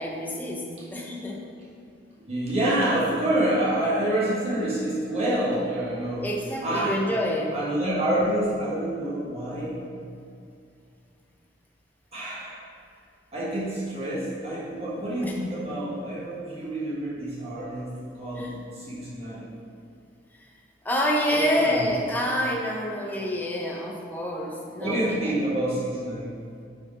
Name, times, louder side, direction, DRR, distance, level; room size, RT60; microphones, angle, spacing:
voice 1, 0.0-1.4 6.2-7.6 15.2-15.4 18.4-18.6 20.8-25.3, equal, 10° left, -1 dB, 0.7 m, -27 dB
voice 2, 2.3-6.3 6.6-7.0 7.5-9.8 12.1-12.6 13.3-19.5 21.3-21.9 24.8-26.4, right 1 dB, 35° right, -7 dB, 1.5 m, -27 dB
6.3 x 4.6 x 4.8 m, 2.4 s
head